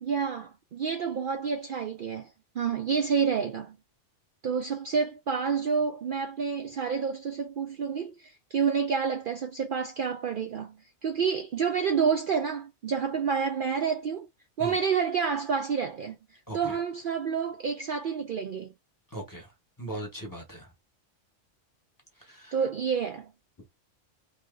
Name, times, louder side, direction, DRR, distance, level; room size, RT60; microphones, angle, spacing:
voice 1, 0.0-3.8 4.4-14.3 14.6-18.7 22.5-23.3, right 6 dB, 55° right, 0.6 m, -29 dB
voice 2, 16.5-16.8 19.1-19.5 19.8-20.7 22.2-22.6, right 1 dB, 15° left, 1.1 m, -39 dB
2.8 x 2.8 x 3.7 m
omnidirectional pair, 1.2 m